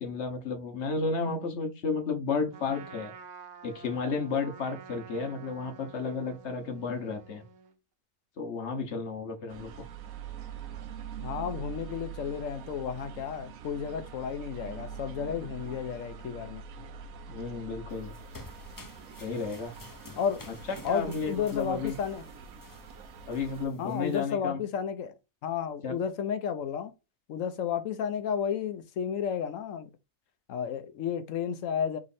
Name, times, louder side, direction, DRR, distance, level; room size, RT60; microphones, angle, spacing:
voice 1, 0.0-3.1 3.6-7.4 8.4-9.9 17.3-18.1 19.2-19.7 20.9-21.9 23.3-24.6 25.8-26.0, left 4 dB, 55° left, 1.2 m, -32 dB
Trumpet, 2.5-7.7, right 6 dB, 55° right, 1.2 m, -49 dB
sound 1, 9.5-23.7, right 7 dB, 90° right, 1.1 m, -44 dB
voice 2, 11.2-16.8 20.2-20.5 20.8-22.2 23.8-25.1 25.4-26.9 27.3-29.9 30.5-32.0, left 7 dB, 75° left, 1.0 m, -32 dB
sound 2, 17.9-24.3, left 3 dB, 30° left, 0.3 m, -51 dB
3.6 x 3.1 x 4.1 m
omnidirectional pair, 1.4 m